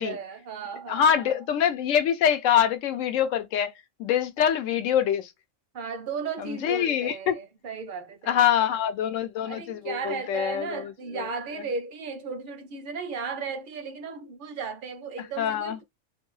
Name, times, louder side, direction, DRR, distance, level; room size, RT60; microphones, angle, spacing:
voice 1, 0.0-1.3 5.7-8.7 9.4-15.8, right 5 dB, 55° right, 0.6 m, -35 dB
voice 2, 0.9-3.7 4.0-5.3 6.4-7.3 8.3-11.3 15.4-15.8, left 9 dB, 90° left, 1.0 m, -25 dB
2.6 x 2.2 x 3.0 m
omnidirectional pair, 1.3 m